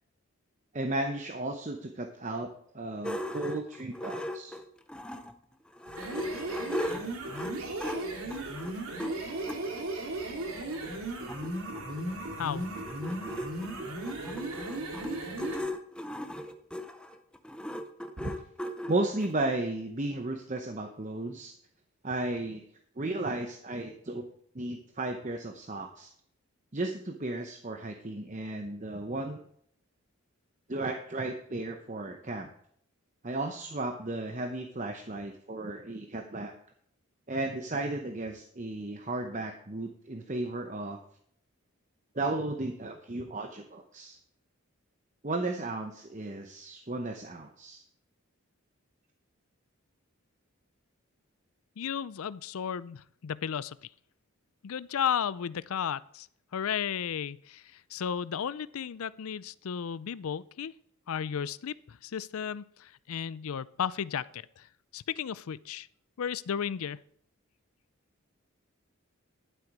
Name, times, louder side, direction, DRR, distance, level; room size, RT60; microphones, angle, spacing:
voice 1, 0.7-2.5 2.7-4.6 18.2-18.4 18.9-21.5 22.0-22.6 23.0-24.2 24.5-26.1 26.7-29.4 30.7-32.5 33.2-36.5 37.3-41.0 42.1-44.2 45.2-47.8, right 2 dB, 35° right, 4 dB, 0.8 m, -34 dB
sound 1, 3.0-5.3 5.7-9.6 10.4-10.5 10.8-10.9 11.0-19.3, left 1 dB, 5° left, 0.6 m, -38 dB
sound 2, 5.9-15.7, right 2 dB, 75° right, 2.4 m, -36 dB
voice 2, 51.8-53.9 54.6-56.3 56.5-60.7 61.1-65.9 66.2-67.0, left 8 dB, 75° left, 19 dB, 0.4 m, -34 dB
12.0 x 7.8 x 4.7 m, 0.65 s
head